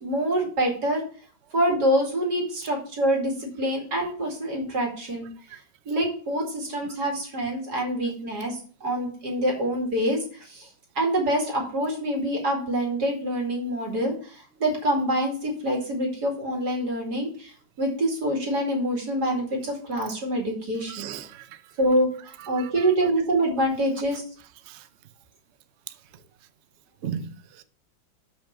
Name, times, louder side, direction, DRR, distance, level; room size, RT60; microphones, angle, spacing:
voice 1, 0.0-1.0 1.5-5.3 5.9-10.7 10.9-21.1 21.8-24.2, right 1 dB, 60° right, 2.9 m, -26 dB
voice 2, 20.9-21.6 22.4-22.9 24.7-24.9 27.0-27.6, right 8 dB, 85° right, 0.6 m, -37 dB
6.6 x 5.6 x 5.7 m
omnidirectional pair, 2.0 m